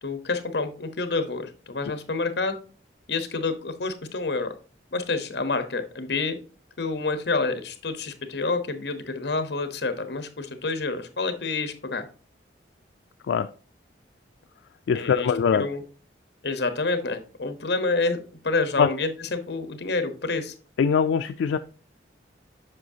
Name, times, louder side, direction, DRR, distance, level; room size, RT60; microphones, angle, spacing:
voice 1, 0.0-2.6 3.1-4.5 4.9-6.4 6.8-12.1 14.9-15.3 15.5-15.8 16.4-20.5, left 3 dB, 65° left, 10 dB, 0.9 m, -28 dB
voice 2, 14.9-15.7 18.8-18.9 20.8-21.6, left 6 dB, 90° left, 9 dB, 0.3 m, -22 dB
7.7 x 5.6 x 2.7 m, 0.38 s
head